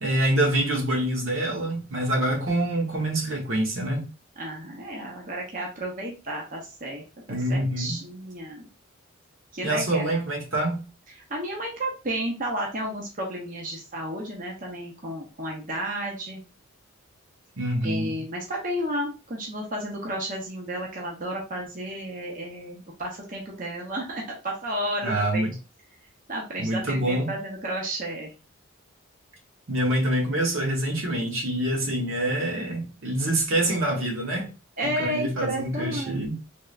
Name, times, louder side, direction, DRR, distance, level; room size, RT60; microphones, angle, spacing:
voice 1, 0.0-4.1 7.3-8.0 9.6-10.8 17.6-18.2 25.0-25.5 26.6-27.3 29.7-34.5 34.8-36.4, right 1 dB, 80° right, 0 dB, 1.3 m, -26 dB
voice 2, 4.4-8.7 9.5-10.2 11.3-16.4 17.8-25.5 26.3-28.3 34.8-36.4, right 1 dB, 40° right, -1 dB, 0.8 m, -32 dB
3.5 x 3.2 x 2.5 m, 0.33 s
head